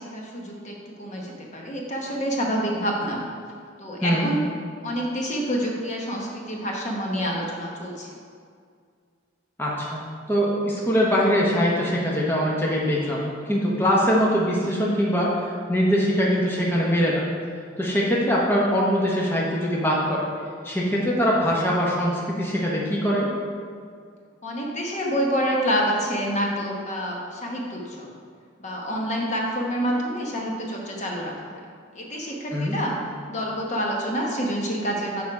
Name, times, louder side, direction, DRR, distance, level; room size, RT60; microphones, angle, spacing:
voice 1, 0.0-3.2 3.8-4.4 4.8-8.1 24.4-28.1 28.6-31.3 31.9-32.9 33.3-35.2, equal, 35° left, -2 dB, 1.0 m, -27 dB
voice 2, 9.6-10.0 10.3-15.3 15.7-17.2 17.8-20.2 20.6-23.3 32.5-32.8, equal, 10° left, -5 dB, 0.9 m, -22 dB
6.7 x 5.5 x 4.8 m, 2.1 s
head